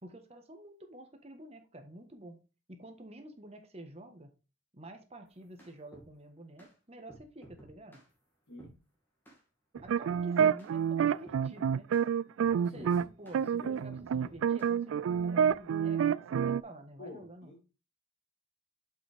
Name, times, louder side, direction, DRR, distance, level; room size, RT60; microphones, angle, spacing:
voice 1, 0.0-2.4 2.7-4.3 4.7-8.0 9.8-11.9 12.5-17.5, right 1 dB, 30° right, 5 dB, 1.3 m, -50 dB
sound 1, 5.3-6.1 6.6-6.7 7.1-8.1 8.6-8.8 9.2-9.4 9.7-10.3 10.6-10.8 11.2-11.4 11.9-12.1 12.4-13.4 13.9-14.7 15.1-15.6, right 1 dB, 10° left, 2.3 m, -54 dB
sound 2, 9.8-13.1 13.3-16.6, right 7 dB, 85° right, 0.3 m, -28 dB
voice 2, 12.6-13.1 13.4-13.9 17.0-17.7, left 2 dB, 85° left, -7 dB, 3.3 m, -49 dB
7.2 x 6.1 x 3.5 m, 0.32 s
head